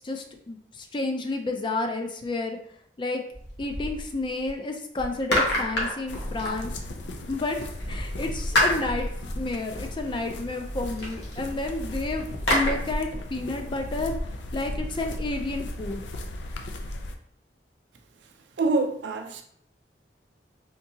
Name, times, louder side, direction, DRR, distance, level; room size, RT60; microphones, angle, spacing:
voice 1, 0.0-2.6 3.0-3.2 3.6-7.6 7.9-14.1 14.5-16.0, left 2 dB, 30° left, 0.4 m, -31 dB
sound 1, 3.3-4.5 5.0-7.1 7.8-12.7, left 1 dB, 75° left, 1.0 m, -30 dB
sound 2, 6.1-17.1, left 1 dB, 90° left, 0.4 m, -36 dB
voice 2, 18.6-19.4, right 3 dB, 90° right, 0.5 m, -25 dB
3.7 x 2.7 x 2.7 m
head